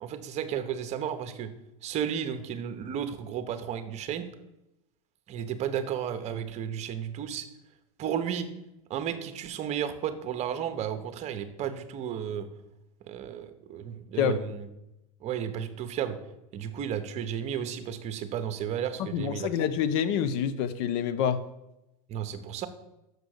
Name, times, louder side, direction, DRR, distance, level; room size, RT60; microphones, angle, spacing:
voice 1, 0.0-1.5 1.8-4.3 5.3-7.5 8.0-8.5 8.9-12.5 13.1-14.7 15.2-16.2 16.5-19.5 22.1-22.7, right 9 dB, 40° right, 10 dB, 0.9 m, -33 dB
voice 2, 19.1-21.4, left 8 dB, 55° left, 12 dB, 0.8 m, -27 dB
6.6 x 5.0 x 6.5 m, 0.89 s
hypercardioid pair, 110°, 18 cm